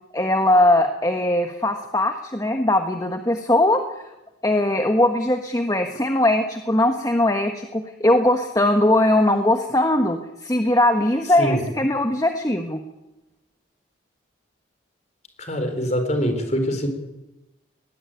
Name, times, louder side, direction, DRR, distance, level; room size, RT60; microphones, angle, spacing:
voice 1, 0.1-3.8 4.4-12.8, left 1 dB, 20° left, 5 dB, 1.3 m, -20 dB
voice 2, 15.4-16.9, equal, 35° left, 6 dB, 4.6 m, -24 dB
20.0 x 20.0 x 9.3 m, 0.98 s
head